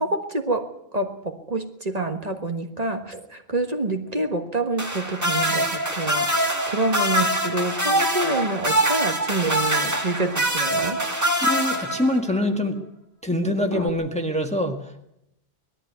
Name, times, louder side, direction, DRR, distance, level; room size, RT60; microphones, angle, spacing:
voice 1, 0.0-11.1, right 2 dB, 40° right, 4 dB, 1.6 m, -27 dB
sound 1, 4.8-12.4 13.7-13.9, right 1 dB, 15° right, 2.0 m, -24 dB
voice 2, 11.4-12.8 13.2-15.0, left 1 dB, 5° left, 3 dB, 1.7 m, -24 dB
20.0 x 14.0 x 9.5 m, 0.82 s
omnidirectional pair, 1.0 m